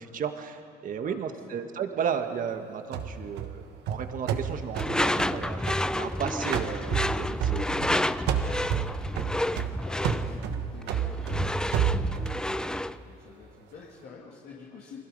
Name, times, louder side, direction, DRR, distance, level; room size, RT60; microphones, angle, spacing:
voice 1, 0.0-8.1, right 7 dB, 55° right, 8 dB, 1.6 m, -34 dB
voice 2, 1.0-1.6 9.2-15.0, left 5 dB, 65° left, -4 dB, 2.9 m, -49 dB
sound 1, 2.9-6.2 6.5-8.0 8.3-12.4, right 8 dB, 85° right, 1.4 m, -30 dB
Door / Screech, 4.7-13.0, left 1 dB, 5° left, 0.4 m, -30 dB
29.5 x 21.0 x 5.4 m, 2.6 s
cardioid pair, 110°, 17 cm